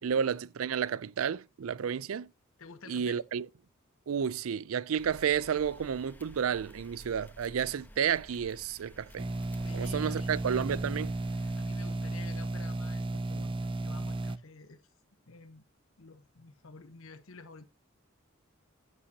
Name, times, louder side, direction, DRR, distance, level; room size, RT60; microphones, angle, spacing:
voice 1, 0.0-2.3 2.9-3.5 4.1-9.3 9.7-11.1, right 8 dB, 90° right, 0.4 m, -31 dB
voice 2, 2.6-3.2 9.6-10.3 11.6-14.8 15.3-15.6 16.0-17.7, left 4 dB, 80° left, 1.0 m, -50 dB
sound 1, 5.0-11.6, equal, 10° left, 1.2 m, -53 dB
sound 2, 9.2-14.4, right 2 dB, 25° right, 0.5 m, -34 dB
11.0 x 8.6 x 2.8 m
head